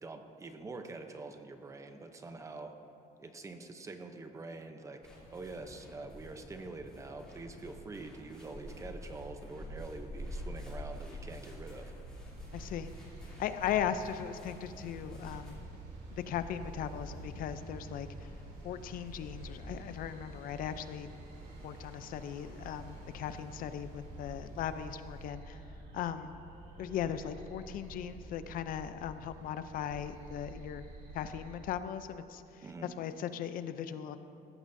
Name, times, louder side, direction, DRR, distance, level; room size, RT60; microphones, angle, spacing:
voice 1, 0.0-2.7 3.2-11.9 32.6-32.9, right 3 dB, 20° right, 6 dB, 0.6 m, -45 dB
sound 1, 5.0-15.5, equal, 5° left, 2.9 m, -47 dB
sound 2, 12.0-31.6, right 2 dB, 90° right, 2.7 m, -49 dB
sound 3, 12.3-25.3, right 1 dB, 65° right, 2.6 m, -54 dB
voice 2, 12.5-12.9 13.4-15.6 16.1-18.3 18.6-21.1 21.6-25.6 25.9-26.3 26.8-30.8 31.1-32.6 33.0-34.2, left 9 dB, 60° left, 11 dB, 0.5 m, -38 dB
18.0 x 14.0 x 2.6 m, 2.7 s
cardioid pair, 175°, 16 cm